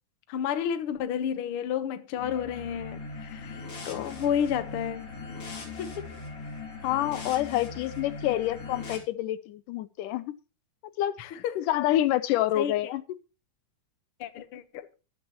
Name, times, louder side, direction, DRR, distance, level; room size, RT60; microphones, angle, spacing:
voice 1, 0.3-5.1 5.8-6.1 11.2-11.7 12.6-12.7 14.2-14.9, left 8 dB, 60° left, 1.5 m, -31 dB
sound 1, 2.1-9.0, left 4 dB, 45° left, 4.0 m, -40 dB
voice 2, 6.8-10.3 11.0-11.1 11.6-13.0, left 14 dB, 80° left, 2.3 m, -27 dB
14.5 x 12.0 x 3.0 m
omnidirectional pair, 3.7 m